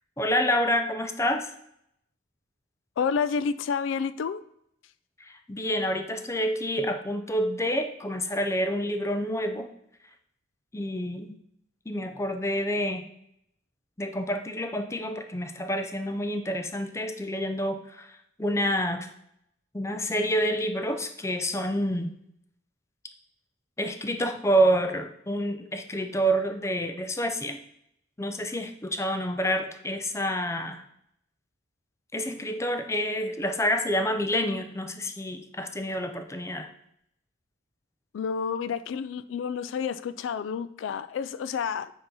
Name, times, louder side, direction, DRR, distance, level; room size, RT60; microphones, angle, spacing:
voice 1, 0.2-1.5 5.2-9.7 10.7-11.3 11.9-13.1 14.0-18.1 18.4-19.1 19.7-22.1 23.8-27.6 28.2-30.8 32.1-36.7, equal, 15° left, 7 dB, 0.5 m, -28 dB
voice 2, 3.0-4.4 38.1-41.9, left 6 dB, 90° left, 14 dB, 0.3 m, -29 dB
7.8 x 2.9 x 5.4 m, 0.74 s
head